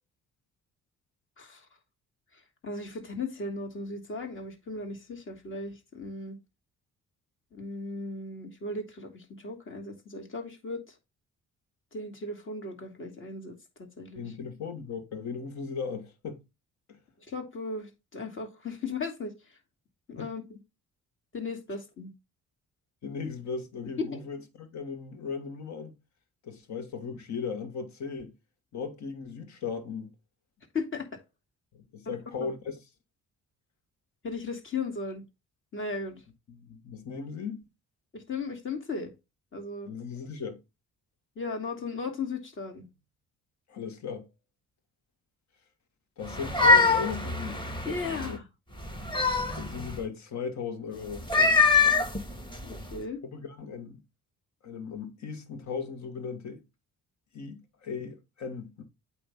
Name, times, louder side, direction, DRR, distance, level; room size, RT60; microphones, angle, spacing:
voice 1, 2.3-6.4 7.5-10.8 11.9-14.3 17.3-19.3 20.1-20.6 21.3-22.1 24.0-24.2 30.7-31.1 32.1-32.5 34.2-35.2 35.7-36.2 38.1-39.1 39.5-39.9 41.4-42.9 47.8-48.4 52.6-53.2, left 3 dB, 40° left, 2.5 m, -36 dB
voice 2, 14.2-16.4 16.9-17.0 20.2-20.3 23.0-25.9 26.4-28.3 28.7-30.1 31.9-32.8 36.5-37.6 39.9-40.6 43.7-44.3 46.2-47.6 48.0-48.4 49.6-51.2 53.2-54.0 54.6-56.6 57.3-58.8, left 5 dB, 65° left, 1.9 m, -37 dB
sound 1, 46.3-48.3 48.8-50.0 51.1-53.0, left 4 dB, 15° left, 1.7 m, -24 dB
8.7 x 3.1 x 5.4 m
cardioid pair, 90°, 30 cm